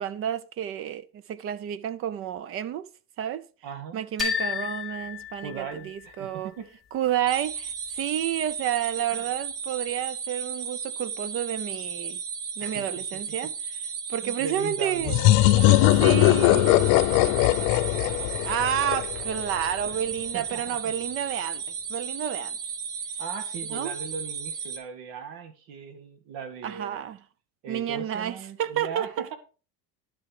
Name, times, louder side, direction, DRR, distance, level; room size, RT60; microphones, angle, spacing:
voice 1, 0.0-2.9 3.2-3.4 3.9-6.5 6.9-12.2 12.6-13.8 14.1-15.2 16.0-16.9 18.4-21.6 21.9-22.6 23.7-23.9 26.6-27.2 27.7-29.2, right 10 dB, 35° right, 0.6 m, -30 dB
voice 2, 3.6-4.0 5.4-6.7 9.1-9.3 12.6-13.5 14.2-15.2 15.6-18.3 19.8-20.9 23.2-27.1 27.6-29.3, right 6 dB, 70° right, 2.2 m, -39 dB
sound 1, 4.2-6.1, left 7 dB, ahead, 3.1 m, -31 dB
sound 2, 7.3-24.8, right 6 dB, 85° right, 2.0 m, -35 dB
sound 3, 15.1-19.6, left 17 dB, 85° left, 0.7 m, -20 dB
11.0 x 6.6 x 4.9 m
cardioid pair, 170°, 38 cm